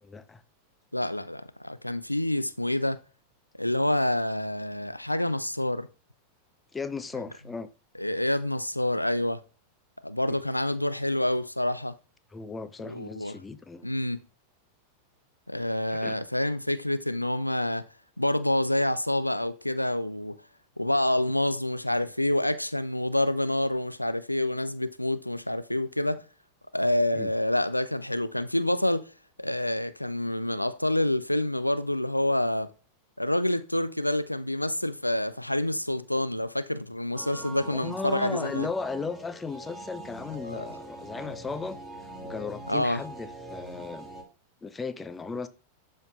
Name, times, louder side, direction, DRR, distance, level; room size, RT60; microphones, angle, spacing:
voice 1, 0.0-0.4 6.7-7.7 10.3-10.4 12.3-13.9 15.9-16.2 27.1-27.3 37.7-41.8 42.2-44.1 44.6-45.5, left 4 dB, 15° left, 0.6 m, -36 dB
voice 2, 0.9-3.0 3.6-5.9 8.0-9.4 10.0-11.9 12.9-13.4 13.8-14.2 15.5-17.9 18.2-20.4 20.8-26.2 26.7-29.1 29.4-32.7 33.2-38.7 40.5-40.7 42.7-43.0, left 1 dB, 85° left, 0.4 m, -27 dB
sound 1, 37.1-44.2, right 1 dB, 5° right, 1.8 m, -43 dB
12.0 x 4.4 x 2.4 m
figure-of-eight pair, 90°, 0 cm